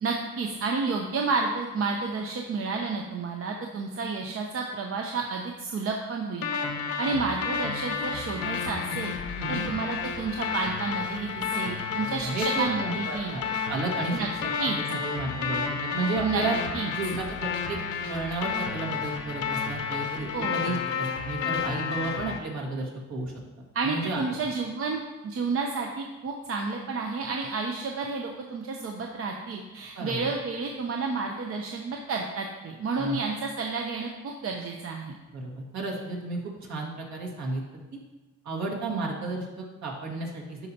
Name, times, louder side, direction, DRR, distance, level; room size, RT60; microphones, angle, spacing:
voice 1, 0.0-6.5 7.0-9.1 9.5-13.3 14.1-14.3 14.6-14.8 16.2-16.4 16.7-16.9 20.3-20.6 23.7-35.2, right 4 dB, 50° right, 1 dB, 0.7 m, -30 dB
sound 1, 6.4-22.4, left 6 dB, 70° left, 0.9 m, -31 dB
voice 2, 12.0-14.4 14.7-16.6 16.9-17.8 18.1-23.3 23.8-24.3 30.0-30.3 33.0-33.2 35.3-37.6 38.4-40.6, right 3 dB, 65° right, -2 dB, 1.8 m, -32 dB
11.5 x 4.4 x 2.8 m, 1.2 s
cardioid pair, 90°, 30 cm